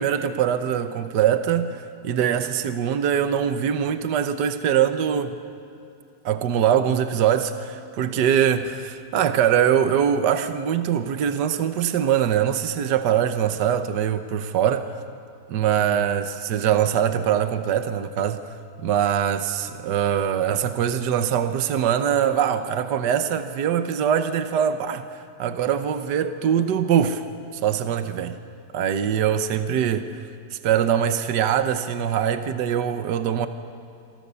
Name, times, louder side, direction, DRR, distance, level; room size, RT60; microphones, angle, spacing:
voice 1, 0.0-5.4 6.2-14.9 15.5-18.4 18.8-27.2 27.5-28.4 28.7-30.2 30.5-33.5, right 9 dB, 70° right, 9 dB, 1.5 m, -23 dB
28.5 x 23.5 x 6.9 m, 2.7 s
omnidirectional pair, 1.9 m